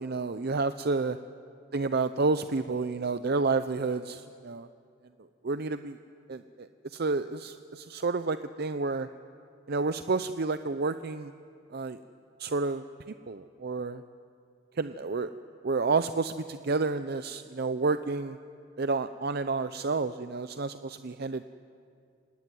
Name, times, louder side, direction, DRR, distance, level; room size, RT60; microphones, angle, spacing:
voice 1, 0.0-1.2 1.7-4.7 5.4-6.0 6.3-9.1 9.7-11.3 11.7-12.0 12.4-12.8 13.3-14.0 14.8-15.3 15.6-18.4 18.8-21.4, right 3 dB, 50° right, 11 dB, 0.6 m, -30 dB
25.0 x 19.5 x 9.3 m, 2.4 s
head